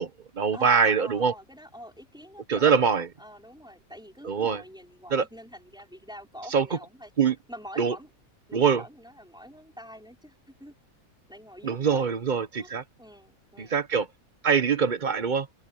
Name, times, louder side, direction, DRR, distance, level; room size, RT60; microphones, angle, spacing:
voice 1, 0.0-1.3 2.5-3.1 4.2-4.6 5.1-5.2 6.5-6.7 7.2-7.3 7.8-7.9 8.5-8.8 11.6-12.8 13.6-14.1 14.4-15.5, right 6 dB, 35° right, 0.9 m, -23 dB
voice 2, 0.5-7.1 7.5-8.1 8.5-10.7 11.3-12.1 12.6-12.7 13.0-13.8, equal, 5° right, 4.6 m, -45 dB
open air
omnidirectional pair, 1.5 m